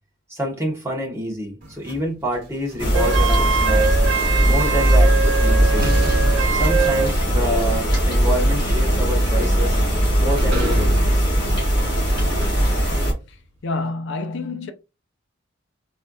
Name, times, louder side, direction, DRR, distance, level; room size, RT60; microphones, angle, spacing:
voice 1, 0.3-4.0 4.4-6.1 6.5-9.7 10.2-11.2, equal, 15° right, 1.2 m, -27 dB
sound 1, 1.6-4.0 5.2-5.3 5.8-13.2, equal, 45° right, 1.7 m, -33 dB
sound 2, 2.8-13.1, equal, 25° left, 1.5 m, -19 dB
Wind instrument woodwind instrument, 2.9-7.1, right 6 dB, 75° right, 0.7 m, -23 dB
voice 2, 13.3-14.7, left 3 dB, 60° left, 0.4 m, -28 dB
3.8 x 3.2 x 2.3 m
head